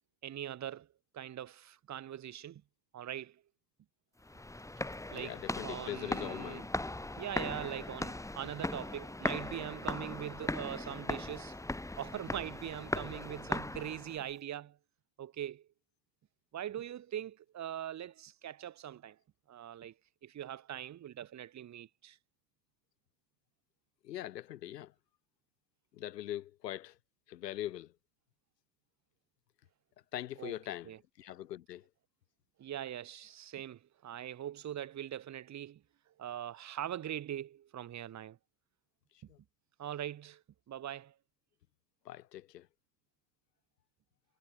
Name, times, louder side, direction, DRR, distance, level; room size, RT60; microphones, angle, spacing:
voice 1, 0.2-0.9 1.1-2.6 2.9-3.4 5.1-6.7 7.2-11.6 12.0-14.8 15.2-15.7 16.5-19.2 19.5-19.9 20.2-22.2 30.4-30.6 30.8-31.0 32.6-35.8 36.2-38.4 39.8-40.4 40.7-41.1, right 11 dB, 35° right, 2.5 m, -42 dB
sound 1, 4.2-14.3, left 2 dB, 5° left, 4.0 m, -39 dB
voice 2, 5.1-6.7 24.0-24.9 25.9-26.9 27.3-27.9 30.1-30.9 31.2-31.8 39.3-39.4 42.1-42.7, left 13 dB, 90° left, 4.6 m, -42 dB
supercardioid pair, 105°, 47 cm